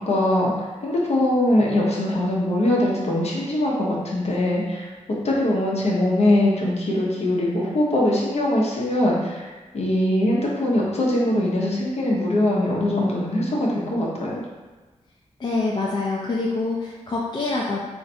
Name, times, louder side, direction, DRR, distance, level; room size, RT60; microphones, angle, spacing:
voice 1, 0.1-4.9 5.2-14.4, left 1 dB, 60° left, -4 dB, 0.8 m, -22 dB
voice 2, 15.4-17.8, left 3 dB, 35° left, -4 dB, 0.4 m, -25 dB
2.5 x 2.4 x 4.1 m, 1.3 s
wide cardioid pair, 145°, 12 cm